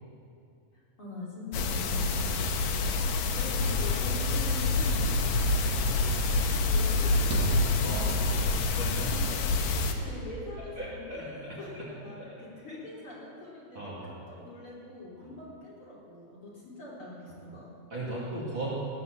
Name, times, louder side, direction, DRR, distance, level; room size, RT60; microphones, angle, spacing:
voice 1, 0.7-5.6 6.2-8.5 8.7-17.7, left 2 dB, 40° left, -6 dB, 3.8 m, -44 dB
sound 1, 1.5-9.9, left 3 dB, 75° left, 2.6 m, -27 dB
sound 2, 3.5-9.4, right 1 dB, 75° right, 3.7 m, -42 dB
voice 2, 8.4-9.1 9.7-9.8 10.8-11.9 12.1-12.2 13.7-14.2 15.2-15.3 17.9-18.7, right 1 dB, 35° right, -7 dB, 3.1 m, -38 dB
18.0 x 10.0 x 6.9 m, 2.6 s
omnidirectional pair, 3.9 m